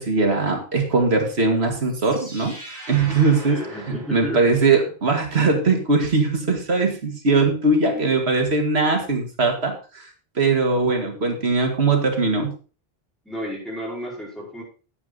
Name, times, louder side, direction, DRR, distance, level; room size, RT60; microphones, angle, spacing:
voice 1, 0.0-2.6 2.9-3.6 4.1-10.1 10.4-12.5, right 3 dB, 90° right, 3 dB, 2.2 m, -20 dB
sound 1, 1.7-4.8, right 2 dB, 40° left, 7.2 m, -41 dB
voice 2, 3.4-4.4 7.9-8.1 13.2-14.6, equal, ahead, -4 dB, 4.7 m, -33 dB
9.7 x 9.4 x 3.9 m, 0.36 s
omnidirectional pair, 1.0 m